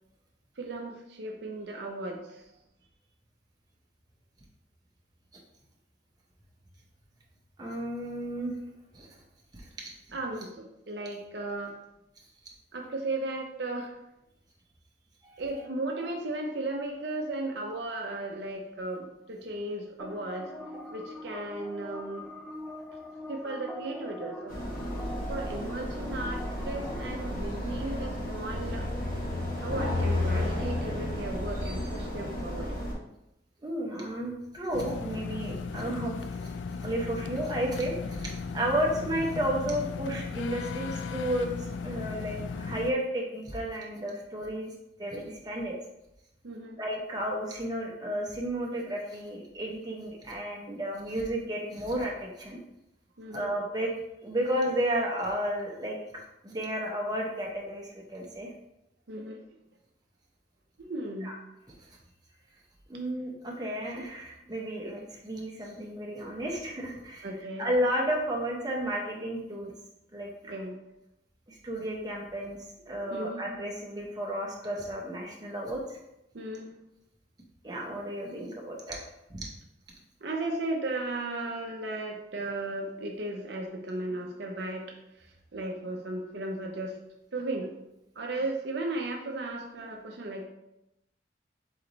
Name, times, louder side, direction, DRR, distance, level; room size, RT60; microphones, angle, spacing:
voice 1, 0.6-2.4 10.1-11.7 12.7-14.0 15.4-22.3 23.3-24.6 25.3-28.9 29.6-32.8 38.9-39.0 46.4-46.8 53.2-53.5 59.1-59.4 60.8-61.4 67.2-67.7 70.5-70.8 73.1-73.4 76.3-76.7 80.2-87.0 87.3-87.7 88.2-90.4, right 2 dB, 65° right, 1 dB, 0.6 m, -35 dB
voice 2, 7.6-8.6 8.9-9.1 9.5-9.9 15.2-15.6 33.6-36.5 36.8-44.7 45.0-45.8 46.8-52.6 53.3-53.9 54.2-56.0 56.4-58.5 61.2-61.4 62.9-67.3 67.6-69.7 70.1-70.5 71.5-72.6 72.9-76.0 77.6-79.0 79.3-79.5, right 1 dB, 20° right, -2 dB, 0.8 m, -32 dB
sound 1, 20.0-27.4, left 1 dB, ahead, 0.3 m, -42 dB
sound 2, 24.5-32.9, left 1 dB, 50° left, 1.0 m, -32 dB
sound 3, 34.7-42.9, left 5 dB, 80° left, 0.3 m, -36 dB
4.0 x 3.3 x 3.9 m, 0.87 s
head